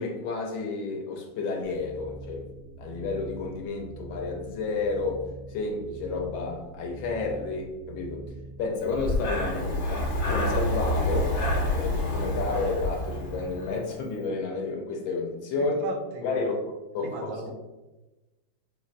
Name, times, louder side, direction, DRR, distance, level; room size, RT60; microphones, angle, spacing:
voice 1, 0.0-2.5 2.8-8.3 8.6-11.4 11.6-15.8 16.2-16.6 16.9-17.5, left 3 dB, 75° left, 1.2 m, -31 dB
sound 1, 1.6-13.7, right 3 dB, 60° right, 1.0 m, -43 dB
Breathing, 8.9-13.8, left 1 dB, 55° left, 1.2 m, -28 dB
voice 2, 15.6-16.5 17.0-17.5, right 3 dB, 80° right, 1.4 m, -36 dB
5.5 x 2.1 x 2.4 m
omnidirectional pair, 2.2 m